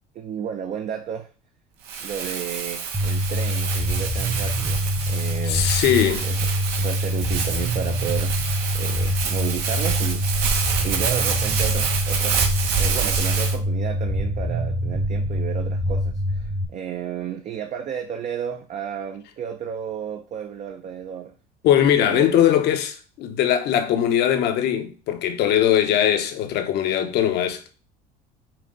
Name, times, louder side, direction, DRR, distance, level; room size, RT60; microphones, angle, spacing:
voice 1, 0.1-1.3 2.0-5.7 6.2-6.5 6.7-8.4 8.7-10.5 10.8-21.3 22.0-22.4, right 8 dB, 40° right, 0.5 m, -32 dB
Crumpling crinkling, 1.9-13.6, right 6 dB, 65° right, 0.9 m, -27 dB
sound 1, 2.9-16.6, equal, 5° right, 0.8 m, -25 dB
voice 2, 5.4-6.2 21.6-27.7, left 10 dB, 65° left, 0.8 m, -20 dB
5.8 x 2.2 x 3.7 m
supercardioid pair, 100°, 19 cm